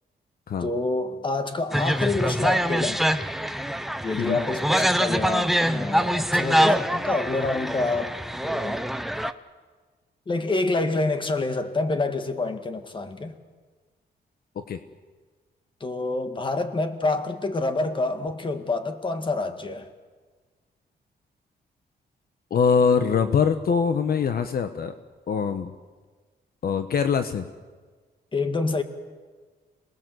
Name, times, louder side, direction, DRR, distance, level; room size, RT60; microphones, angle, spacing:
voice 1, 0.6-3.0 4.0-8.8 10.3-13.3 15.8-19.9 28.3-28.8, left 3 dB, 30° left, 8 dB, 1.9 m, -27 dB
sound 1, 1.7-9.3, equal, ahead, 0.8 m, -24 dB
voice 2, 22.5-24.9 25.3-25.7 26.6-27.5, left 6 dB, 60° left, 8 dB, 1.2 m, -23 dB
27.0 x 19.5 x 7.9 m, 1.4 s
cardioid pair, 120°, 17 cm